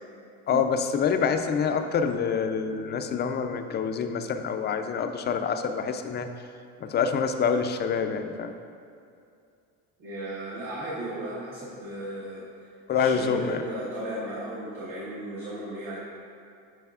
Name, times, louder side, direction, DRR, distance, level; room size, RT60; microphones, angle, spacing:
voice 1, 0.5-6.3 6.8-8.5 12.9-13.6, left 6 dB, 30° left, 7 dB, 0.4 m, -26 dB
voice 2, 10.0-16.0, right 1 dB, 65° right, -8 dB, 1.5 m, -35 dB
9.1 x 5.0 x 2.4 m, 2.4 s
supercardioid pair, 105°, 34 cm